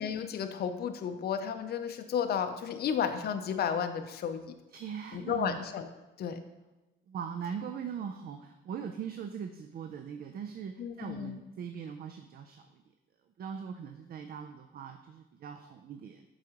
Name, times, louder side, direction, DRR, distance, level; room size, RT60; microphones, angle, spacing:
voice 1, 0.0-4.5 5.1-5.9 6.2-6.4 10.8-11.4, left 7 dB, 55° left, 7 dB, 0.5 m, -33 dB
voice 2, 4.7-5.6 7.1-12.8 13.4-16.2, right 7 dB, 50° right, 7 dB, 0.4 m, -40 dB
7.6 x 4.8 x 2.9 m, 1.1 s
cardioid pair, 90°, 20 cm